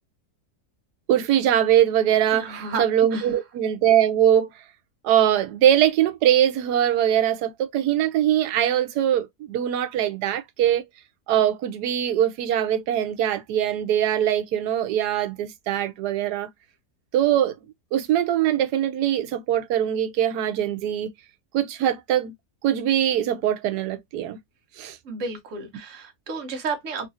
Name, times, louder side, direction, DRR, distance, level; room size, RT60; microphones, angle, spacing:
voice 1, 1.1-4.5 5.0-10.8 11.3-16.5 17.1-17.5 17.9-21.1 21.5-22.3 22.6-24.4 24.8-25.0, right 10 dB, 85° right, 1.2 m, -22 dB
voice 2, 2.3-2.8 3.1-3.3 25.0-27.1, right 4 dB, 55° right, 1.2 m, -32 dB
3.1 x 2.5 x 2.5 m
omnidirectional pair, 1.7 m